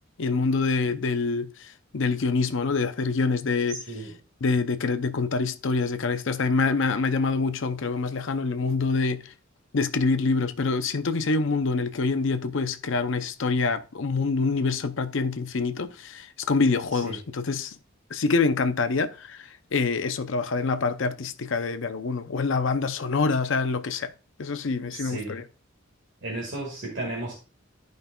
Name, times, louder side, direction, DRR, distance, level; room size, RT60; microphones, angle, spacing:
voice 1, 0.2-3.8 4.4-9.3 9.7-17.8 18.1-24.1 24.4-25.4, left 4 dB, 65° left, 0.6 m, -26 dB
voice 2, 3.7-4.2 17.0-17.2 24.9-25.4 26.2-27.3, right 2 dB, 60° right, 1.9 m, -34 dB
13.0 x 5.3 x 2.3 m
head